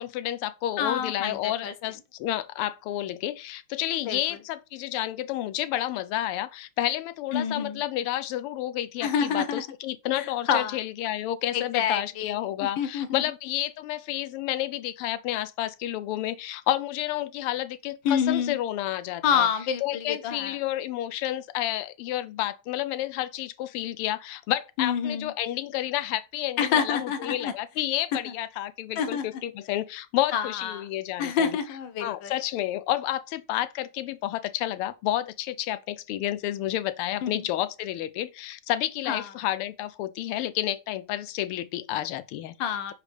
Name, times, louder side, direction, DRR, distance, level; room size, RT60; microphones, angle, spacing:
voice 1, 0.0-19.5 19.8-31.5 32.0-42.5, left 13 dB, 85° left, 1.5 m, -30 dB
voice 2, 0.8-1.7 4.1-4.2 7.3-7.8 9.0-9.6 10.2-10.8 11.5-13.1 18.0-18.6 19.2-20.6 24.8-25.3 26.6-27.5 29.0-29.3 30.3-30.8 31.2-32.3 37.2-37.5 39.1-39.3 42.6-42.9, left 7 dB, 65° left, 1.3 m, -27 dB
4.9 x 4.2 x 4.9 m
omnidirectional pair, 2.4 m